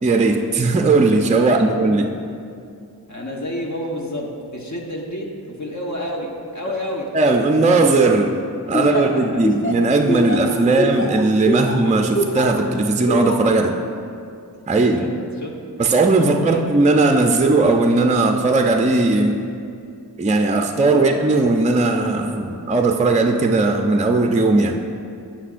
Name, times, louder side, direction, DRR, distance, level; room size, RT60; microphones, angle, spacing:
voice 1, 0.0-2.1 7.1-8.3 8.7-13.7 14.7-15.1 15.8-19.4 20.2-24.8, right 3 dB, 20° right, 4 dB, 0.4 m, -17 dB
voice 2, 3.1-7.1 8.8-9.0 9.3-9.4 15.0-15.5 16.2-16.6 20.8-21.1, left 1 dB, 45° left, 0 dB, 1.1 m, -30 dB
Laughter, 8.7-12.6 13.1-13.5, equal, 30° left, 0.8 m, -23 dB
9.7 x 6.1 x 2.5 m, 2.4 s
cardioid pair, 50°, 39 cm